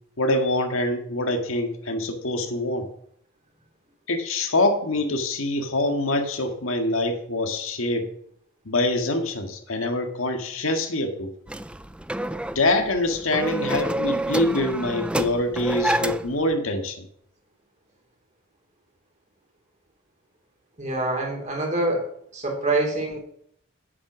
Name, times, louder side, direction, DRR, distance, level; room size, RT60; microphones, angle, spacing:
voice 1, 0.2-2.9 4.1-8.1 8.7-11.3 12.4-17.1, left 2 dB, 80° left, 4 dB, 1.8 m, -25 dB
sound 1, 11.5-16.4, right 1 dB, 5° right, 0.3 m, -28 dB
voice 2, 20.8-22.1 22.3-23.2, right 2 dB, 35° right, 0 dB, 3.4 m, -25 dB
9.1 x 8.5 x 6.2 m, 0.68 s
head